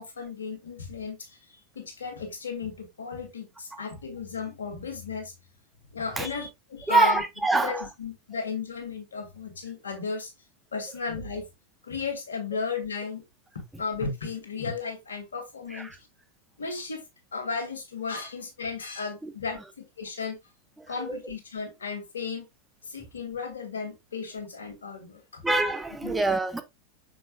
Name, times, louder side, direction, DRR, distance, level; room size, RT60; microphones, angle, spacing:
voice 1, 0.0-5.3 5.9-7.2 7.5-10.3 10.7-11.5 11.8-13.2 13.8-15.9 16.6-17.0 17.3-19.6 20.0-20.4 20.9-22.5 22.8-25.4 26.0-26.1, left 5 dB, 70° left, 2.6 m, -34 dB
voice 2, 6.9-7.9 15.7-16.0 19.2-19.3 20.8-21.2 25.4-26.6, right 3 dB, 5° right, 1.1 m, -26 dB
6.7 x 6.0 x 2.4 m
figure-of-eight pair, 90°, 0 cm